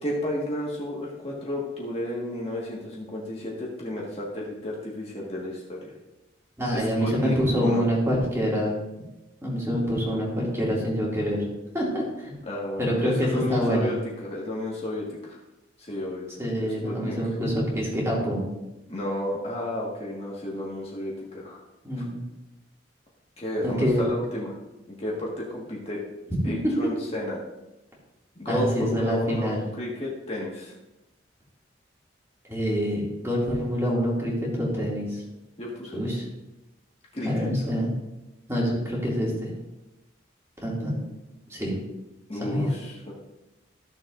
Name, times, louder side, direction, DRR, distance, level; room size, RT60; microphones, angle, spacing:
voice 1, 0.0-5.9 6.7-7.8 12.4-15.4 15.8-16.3 16.6-17.4 18.9-21.6 23.4-24.6 24.9-26.0 26.4-27.4 28.4-30.7 35.6-36.0 37.1-37.5 42.3-43.1, left 1 dB, 30° left, -4 dB, 1.7 m, -32 dB
voice 2, 6.6-8.7 9.4-11.4 11.7-12.3 12.8-13.9 16.4-18.5 21.8-22.2 23.6-24.0 28.5-29.6 32.5-35.2 35.9-36.2 37.2-37.9 38.5-39.5 40.6-41.0 41.5-41.8 42.4-42.7, equal, 15° right, -5 dB, 2.5 m, -26 dB
14.5 x 7.1 x 2.6 m, 0.99 s
head